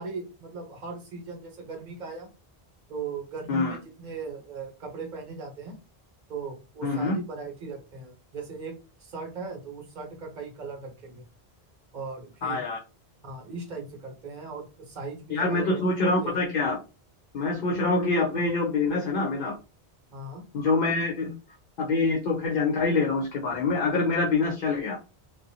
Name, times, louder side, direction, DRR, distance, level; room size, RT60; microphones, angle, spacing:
voice 1, 0.0-2.3 2.9-5.8 6.3-8.7 9.0-11.2 11.9-12.6 13.2-15.8 16.2-16.4 20.1-20.4, right 4 dB, 50° right, 1 dB, 0.9 m, -38 dB
voice 2, 6.8-7.2 12.4-12.8 15.3-16.8 17.3-19.5 20.5-21.3 21.8-25.0, left 3 dB, 60° left, 0 dB, 0.7 m, -25 dB
2.5 x 2.2 x 2.7 m, 0.31 s
omnidirectional pair, 1.1 m